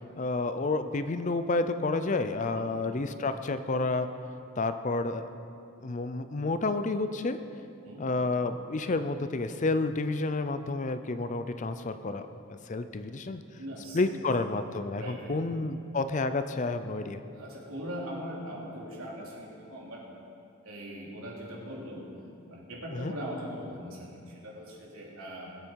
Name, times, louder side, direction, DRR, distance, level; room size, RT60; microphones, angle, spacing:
voice 1, 0.2-4.1 4.6-5.3 5.8-7.4 8.0-13.4 13.9-17.2 22.9-23.1, left 3 dB, 35° left, 10 dB, 0.5 m, -30 dB
voice 2, 2.5-2.8 7.8-8.1 13.5-14.2 15.0-15.4 17.3-20.0 20.6-22.1 22.5-25.5, equal, 80° right, -4 dB, 3.3 m, -40 dB
21.0 x 8.7 x 4.7 m, 2.7 s
head